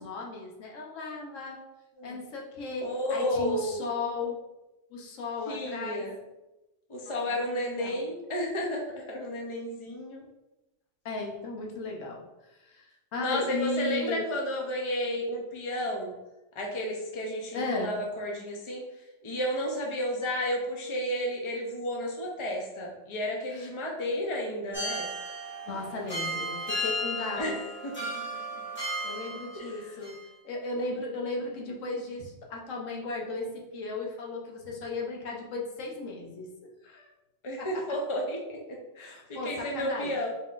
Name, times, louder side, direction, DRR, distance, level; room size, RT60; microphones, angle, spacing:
voice 1, 0.0-1.6 2.0-4.4 4.9-6.1 7.1-8.0 11.0-12.2 12.6-14.3 17.5-18.0 23.5-23.7 25.7-27.6 29.0-30.2 30.4-36.5 36.8-37.1 37.6-38.0 39.0-40.1, left 3 dB, 85° left, 0 dB, 1.2 m, -35 dB
voice 2, 2.8-3.8 5.5-6.2 6.9-10.2 13.2-16.2 16.5-18.8 19.2-25.1 27.4-27.6 27.8-27.9 28.3-28.4 29.5-29.9 37.4-40.3, equal, 30° left, -1 dB, 0.7 m, -32 dB
sound 1, 24.7-29.7 30.0-30.2, equal, 10° left, 1.4 m, -34 dB
4.7 x 3.6 x 2.5 m, 0.99 s
omnidirectional pair, 1.3 m